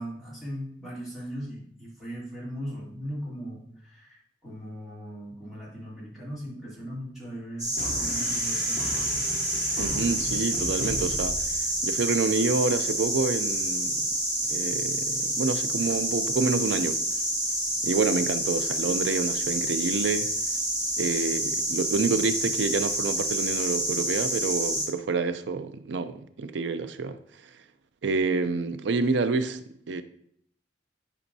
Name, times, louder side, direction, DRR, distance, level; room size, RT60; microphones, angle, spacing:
voice 1, 0.0-9.1 9.7-10.1, equal, ahead, 2.8 m, -39 dB
sound 1, 7.6-24.9, right 1 dB, 20° right, 2.5 m, -28 dB
sound 2, 7.8-12.1, left 1 dB, 45° left, 1.0 m, -37 dB
voice 2, 9.8-14.1 14.5-17.0 17.8-20.3 21.0-27.5 28.0-30.0, right 4 dB, 85° right, 0.5 m, -28 dB
10.0 x 4.4 x 2.7 m
head